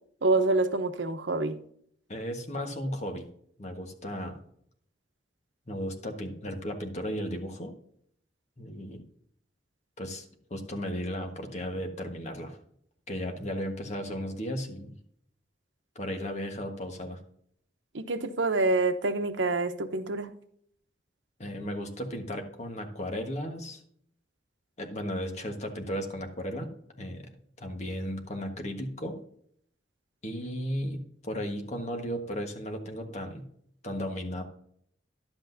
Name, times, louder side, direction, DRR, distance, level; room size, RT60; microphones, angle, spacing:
voice 1, 0.2-1.6 17.9-20.3, right 3 dB, 85° right, 0.8 m, -27 dB
voice 2, 2.1-3.2 3.6-4.4 5.7-7.7 8.6-9.0 10.0-12.6 13.1-14.9 15.9-17.2 21.4-23.8 24.8-26.7 27.0-27.3 27.6-29.2 30.2-33.5 33.8-34.4, equal, 40° left, 1.4 m, -35 dB
11.5 x 8.0 x 2.7 m
head